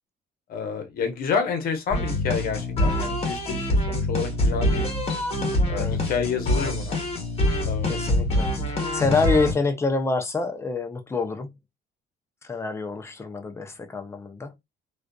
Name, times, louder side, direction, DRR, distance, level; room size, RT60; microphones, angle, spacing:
voice 1, 0.5-4.9 5.7-7.0 7.6-8.2, left 6 dB, 60° left, 0.9 m, -29 dB
sound 1, 1.9-9.5, left 1 dB, 35° left, 1.1 m, -25 dB
voice 2, 7.9-11.5 12.4-14.5, left 3 dB, 15° left, 0.5 m, -27 dB
2.4 x 2.4 x 2.2 m
cardioid pair, 110°, 17 cm